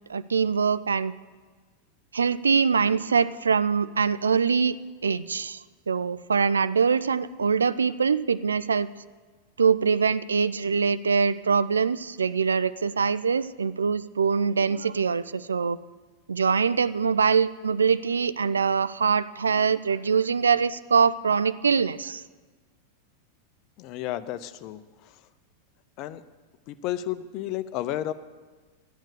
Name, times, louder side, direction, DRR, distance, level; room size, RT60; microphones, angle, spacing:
voice 1, 0.1-1.1 2.1-4.8 5.0-8.9 9.6-15.8 16.3-22.2, right 5 dB, 75° right, 16 dB, 0.4 m, -23 dB
voice 2, 23.8-24.8 26.0-26.2 26.7-28.1, left 13 dB, 40° left, 14 dB, 0.6 m, -32 dB
13.0 x 8.9 x 6.7 m, 1.4 s
figure-of-eight pair, 90°, 0 cm